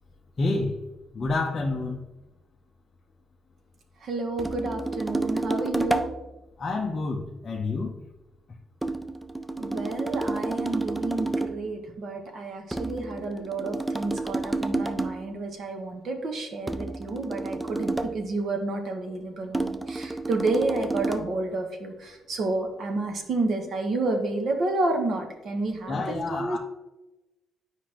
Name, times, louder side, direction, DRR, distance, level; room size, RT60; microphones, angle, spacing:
voice 1, 0.4-0.8 1.1-2.1 6.6-8.0 25.9-26.6, left 3 dB, 30° left, -1 dB, 0.7 m, -28 dB
voice 2, 4.0-6.1 9.6-26.6, right 2 dB, 50° right, 4 dB, 1.1 m, -30 dB
sound 1, 4.4-6.2 8.8-11.7 12.7-15.3 16.7-18.2 19.5-21.3, right 2 dB, 5° right, 0.3 m, -30 dB
9.7 x 5.0 x 3.0 m, 1.0 s
cardioid pair, 150°, 0 cm